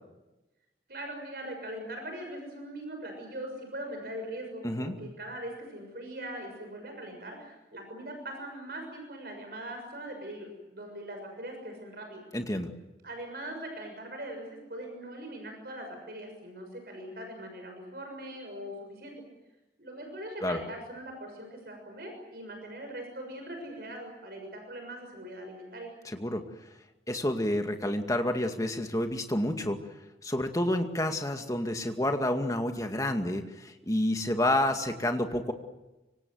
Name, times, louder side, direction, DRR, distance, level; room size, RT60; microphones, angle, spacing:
voice 1, 0.9-12.2 13.0-19.1 19.8-25.9, right 1 dB, 55° right, 4 dB, 6.6 m, -41 dB
voice 2, 4.6-5.0 12.3-12.7 20.4-20.6 26.1-26.4 27.1-29.8 30.2-35.5, left 1 dB, 20° left, 5 dB, 2.2 m, -29 dB
25.5 x 25.0 x 7.9 m, 1.0 s
head